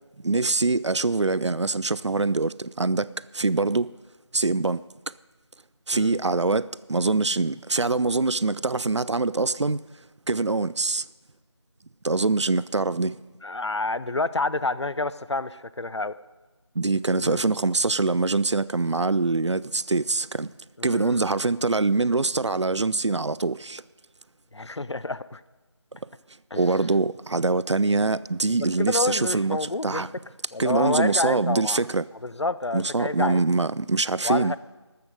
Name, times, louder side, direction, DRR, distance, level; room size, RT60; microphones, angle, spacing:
voice 1, 0.2-3.9 4.3-4.8 5.9-9.8 10.3-11.1 12.0-13.2 16.8-20.5 20.8-23.8 26.6-29.6 29.8-30.1 30.6-32.1 32.7-34.6, right 3 dB, 70° right, 0.5 m, -24 dB
voice 2, 13.4-16.2 17.2-17.4 20.8-21.3 24.5-25.4 26.5-26.7 28.8-30.0 30.5-31.8 32.2-33.5 34.2-34.6, left 2 dB, 65° left, 0.6 m, -28 dB
14.0 x 12.5 x 5.2 m
figure-of-eight pair, 170°, 15 cm